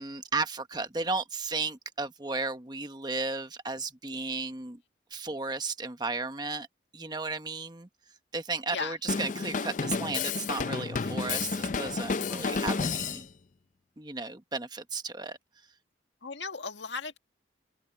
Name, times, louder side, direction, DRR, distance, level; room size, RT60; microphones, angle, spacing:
voice 1, 0.0-4.8 5.1-6.7 6.9-7.9 8.3-13.3 14.0-15.4, right 3 dB, 25° right, 1.2 m, -34 dB
Drum kit, 9.1-13.2, left 4 dB, 45° left, 0.5 m, -31 dB
voice 2, 16.2-17.2, left 4 dB, 75° left, 1.9 m, -36 dB
head